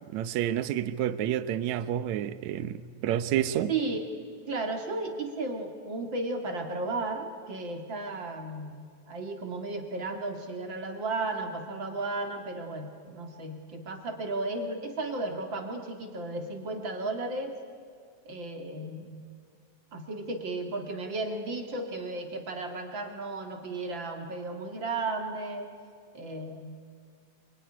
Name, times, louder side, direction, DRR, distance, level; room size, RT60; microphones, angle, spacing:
voice 1, 0.1-3.7, right 11 dB, 70° right, 13 dB, 2.1 m, -29 dB
voice 2, 3.7-4.1 4.5-17.6 18.3-19.3 19.9-25.7 26.1-26.8, right 2 dB, 40° right, 4 dB, 2.6 m, -34 dB
27.0 x 22.5 x 9.9 m, 2.1 s
omnidirectional pair, 3.5 m